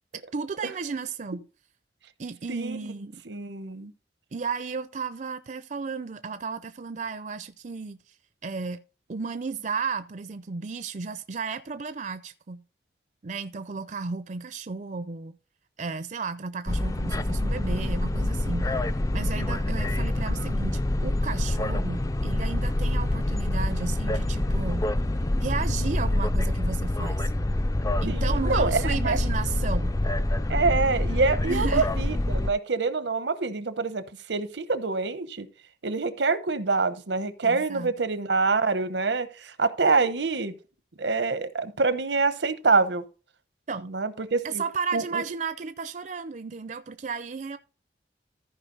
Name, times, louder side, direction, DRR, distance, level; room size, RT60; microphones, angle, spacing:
voice 1, 0.1-1.4 2.2-3.2 4.3-8.2 8.4-8.8 9.1-12.6 13.2-15.4 15.8-18.8 19.1-24.9 25.4-27.3 28.0-30.0 31.4-31.9 37.4-37.9 43.7-43.9 44.4-47.6, right 5 dB, 45° right, 0.5 m, -33 dB
voice 2, 2.5-2.9 3.2-3.9 28.1-29.2 30.5-34.0 34.3-35.5 35.8-40.5 41.0-43.0 43.8-44.6 44.9-45.2, right 4 dB, 85° right, 0.9 m, -26 dB
sound 1, 16.7-32.5, left 1 dB, 20° left, 0.4 m, -26 dB
14.0 x 5.0 x 3.9 m
head